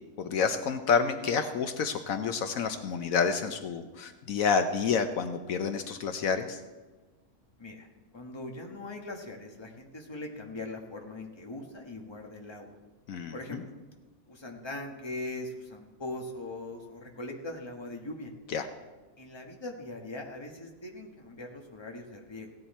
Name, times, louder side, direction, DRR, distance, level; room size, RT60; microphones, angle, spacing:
voice 1, 0.2-6.6 13.1-13.6 18.5-18.7, left 6 dB, 75° left, 8 dB, 1.1 m, -29 dB
voice 2, 8.1-12.7 13.3-13.7 14.3-18.3 19.2-22.5, left 2 dB, 20° left, 1 dB, 1.4 m, -41 dB
16.5 x 10.0 x 4.3 m, 1.2 s
omnidirectional pair, 1.5 m